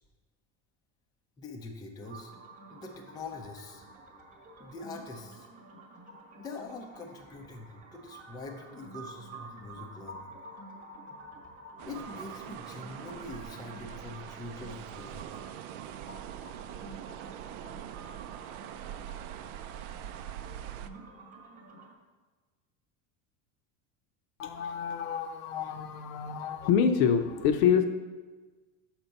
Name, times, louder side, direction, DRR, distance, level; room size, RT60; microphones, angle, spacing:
voice 1, 1.4-2.3 2.7-3.8 4.6-5.5 6.4-10.3 11.8-15.2, left 3 dB, 10° left, 2 dB, 0.4 m, -44 dB
sound 1, 2.0-21.9, right 2 dB, 20° right, 1.0 m, -49 dB
sound 2, 11.8-20.9, right 11 dB, 85° right, 0.5 m, -43 dB
voice 2, 24.4-27.8, left 7 dB, 70° left, 7 dB, 0.8 m, -27 dB
6.2 x 4.5 x 5.4 m, 1.3 s
cardioid pair, 145°, 42 cm